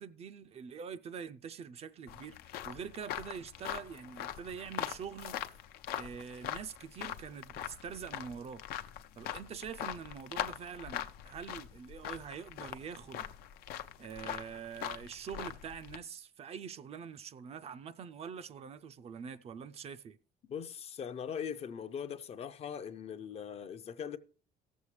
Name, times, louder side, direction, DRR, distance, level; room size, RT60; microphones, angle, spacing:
voice 1, 0.0-2.4 2.6-5.3 5.9-8.6 9.2-13.3 14.0-20.2, right 7 dB, 40° right, 0.4 m, -45 dB
sound 1, 2.1-16.0, left 11 dB, 90° left, 0.5 m, -42 dB
voice 2, 20.5-24.2, left 7 dB, 40° left, 0.5 m, -40 dB
17.0 x 7.2 x 3.2 m
cardioid pair, 140°, 16 cm